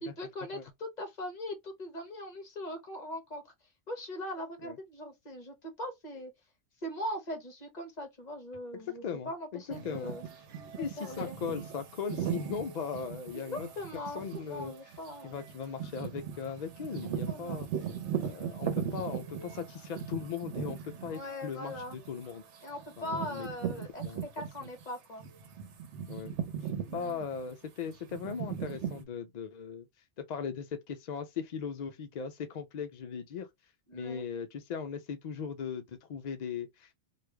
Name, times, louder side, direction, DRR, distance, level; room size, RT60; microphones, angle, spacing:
voice 1, 0.0-3.4 3.9-6.3 6.8-10.2 10.8-11.4 13.5-15.4 17.3-17.7 21.1-22.0 22.6-25.2 26.8-27.2 33.9-34.3, left 1 dB, 40° left, 1.1 m, -40 dB
voice 2, 8.7-10.1 10.8-13.7 14.1-14.7 15.2-17.7 18.2-22.4 23.0-23.5 24.0-24.2 26.1-26.3 26.6-29.9 30.2-33.5 33.9-36.9, left 6 dB, 60° left, 0.4 m, -38 dB
sound 1, 9.7-24.8 25.2-29.0, right 8 dB, 85° right, 1.0 m, -39 dB
3.2 x 2.4 x 3.3 m
omnidirectional pair, 1.2 m